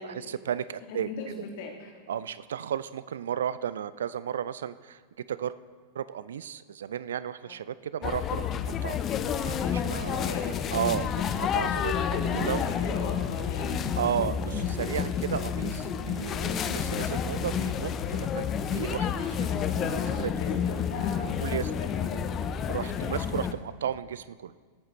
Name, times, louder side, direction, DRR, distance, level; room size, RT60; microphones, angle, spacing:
voice 1, 0.0-1.1 2.1-5.0 5.3-5.6 5.9-9.0 9.4-10.4 10.7-11.9 12.4-12.6 14.0-19.5 19.8-19.9 20.2-20.3 21.4-21.7 22.7-24.5, right 9 dB, 65° right, 16 dB, 0.3 m, -33 dB
voice 2, 0.9-1.9 7.4-7.5 10.2-10.5 11.9-13.9 19.4-22.3 22.9-23.4, left 3 dB, 50° left, 1 dB, 2.0 m, -38 dB
sound 1, 8.0-23.5, left 7 dB, 30° left, 0.6 m, -30 dB
18.5 x 8.7 x 3.1 m, 1.5 s
figure-of-eight pair, 90°, 0 cm